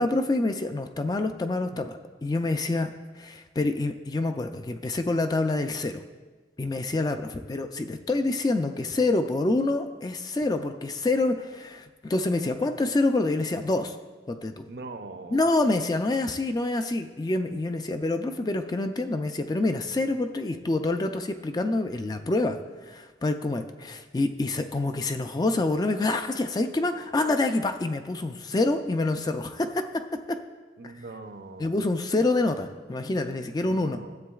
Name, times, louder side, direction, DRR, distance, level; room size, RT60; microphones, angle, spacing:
voice 1, 0.0-2.9 3.2-6.0 6.6-14.0 14.3-14.5 15.3-22.6 22.9-29.9 31.6-34.0, left 2 dB, 20° left, 7 dB, 0.3 m, -27 dB
voice 2, 14.7-15.4 30.8-31.7 33.6-34.2, right 3 dB, 60° right, 8 dB, 0.6 m, -42 dB
13.0 x 7.6 x 2.4 m, 1.3 s
head